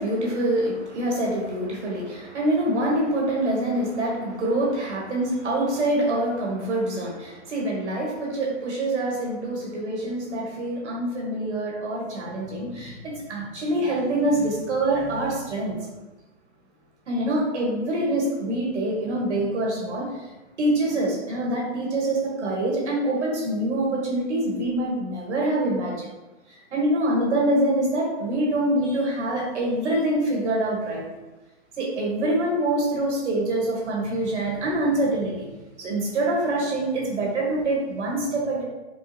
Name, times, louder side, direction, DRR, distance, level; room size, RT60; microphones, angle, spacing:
voice 1, 0.0-15.8 17.1-20.3 20.6-26.1 26.5-31.0 31.8-35.5 35.8-38.6, right 1 dB, 85° right, -3 dB, 1.5 m, -25 dB
4.5 x 2.0 x 3.2 m, 1.1 s
hypercardioid pair, 140°, 34 cm